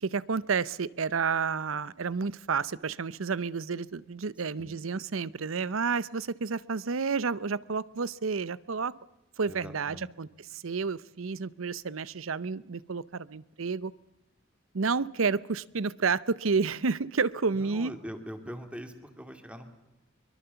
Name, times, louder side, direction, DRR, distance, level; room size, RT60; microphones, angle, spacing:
voice 1, 0.0-8.9 9.4-13.9 14.7-17.9, right 5 dB, 90° right, 20 dB, 0.7 m, -30 dB
voice 2, 9.5-10.1 17.5-19.6, equal, 5° right, 7 dB, 2.4 m, -42 dB
23.0 x 22.0 x 6.9 m, 1.0 s
head